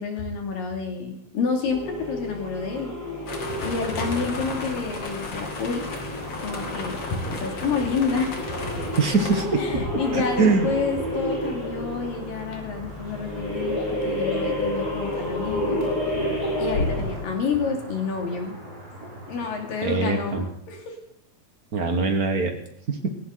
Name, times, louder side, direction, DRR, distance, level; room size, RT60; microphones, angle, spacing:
voice 1, 0.0-2.9 3.2-3.3 3.6-5.8 6.4-8.8 9.6-15.9 16.6-18.6 19.3-21.0, left 4 dB, 65° left, 3 dB, 4.3 m, -29 dB
sound 1, 1.6-17.3, left 1 dB, 25° left, 7.1 m, -30 dB
sound 2, 3.3-9.5, left 3 dB, 45° left, 3.4 m, -35 dB
sound 3, 3.9-20.4, right 1 dB, 25° right, 6.8 m, -42 dB
voice 2, 9.0-9.8 10.1-10.7 19.8-20.5 21.7-22.5 22.9-23.1, right 4 dB, 60° right, 4 dB, 0.9 m, -23 dB
17.5 x 16.5 x 4.0 m, 0.76 s
omnidirectional pair, 4.3 m